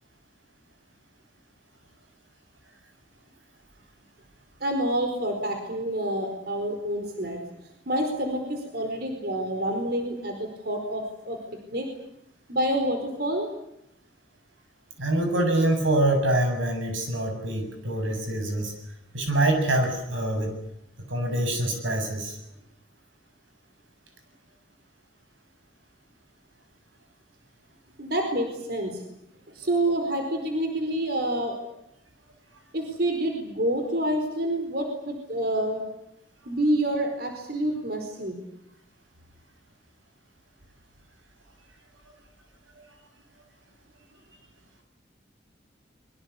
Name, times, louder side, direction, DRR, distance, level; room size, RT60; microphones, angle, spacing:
voice 1, 4.6-7.4 7.9-11.4 11.7-11.9 12.5-13.5 28.0-29.0 29.5-31.6 32.7-35.8 36.4-38.4, right 1 dB, 55° right, 4 dB, 4.6 m, -28 dB
voice 2, 15.0-18.7 19.1-20.5 21.1-22.4 42.8-42.9, right 1 dB, 90° right, 5 dB, 7.7 m, -25 dB
25.0 x 23.5 x 8.5 m, 0.81 s
head